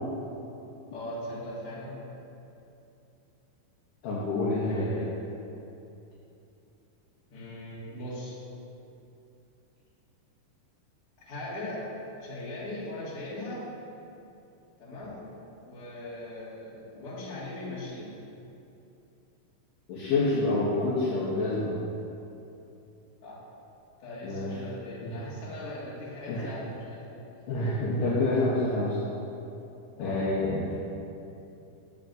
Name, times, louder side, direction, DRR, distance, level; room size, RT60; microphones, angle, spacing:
voice 1, 0.9-2.1 4.6-5.1 7.3-8.4 11.2-11.8 12.2-13.6 14.8-15.2 15.6-18.1 23.2-23.4 24.0-27.2 30.0-30.3, left 1 dB, 45° left, -9 dB, 2.4 m, -39 dB
voice 2, 4.0-4.9 19.9-21.7 24.2-24.5 25.0-25.1 26.3-26.5 27.5-29.0 30.0-30.7, left 2 dB, 70° left, -7 dB, 2.3 m, -27 dB
10.0 x 7.2 x 2.6 m, 2.8 s
omnidirectional pair, 4.3 m